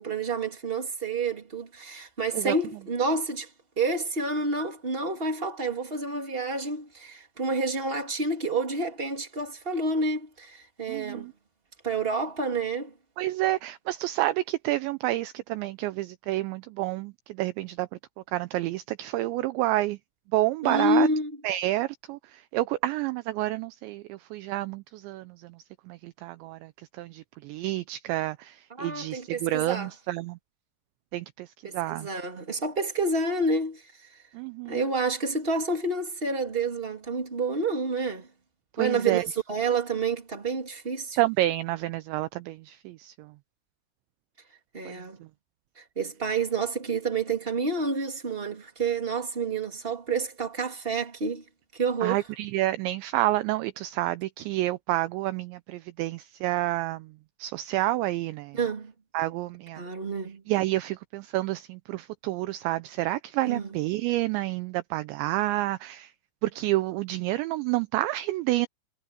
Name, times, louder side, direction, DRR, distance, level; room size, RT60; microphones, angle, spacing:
voice 1, 0.0-3.5 3.8-11.3 11.8-12.9 20.6-21.3 28.8-29.9 31.6-33.8 34.6-38.3 38.8-41.2 44.7-45.2 45.8-51.4 51.7-52.2 58.5-58.9 59.8-60.4 63.4-63.7, right 3 dB, 15° right, 2.1 m, -29 dB
voice 2, 10.9-11.3 13.2-17.9 18.3-20.0 20.3-21.1 21.4-25.6 25.9-26.7 27.0-30.4 31.1-32.1 34.3-34.9 38.8-39.2 41.2-43.3 44.9-45.0 52.0-57.1 57.4-58.6 59.1-59.8 60.5-66.1 66.4-68.7, right 17 dB, 80° right, 2.7 m, -29 dB
omnidirectional pair, 5.7 m